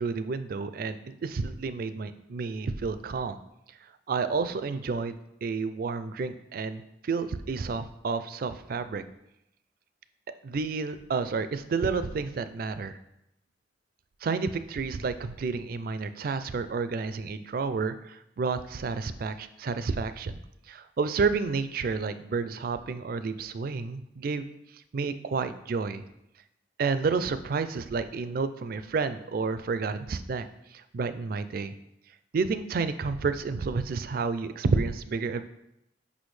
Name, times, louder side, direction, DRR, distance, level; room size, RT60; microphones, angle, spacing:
voice 1, 0.0-3.4 4.1-9.0 10.4-13.0 14.2-20.4 20.7-24.5 24.9-26.0 26.8-30.5 30.7-31.7 32.3-35.4, right 4 dB, 55° right, 12 dB, 0.4 m, -30 dB
6.2 x 5.5 x 3.2 m, 0.83 s
head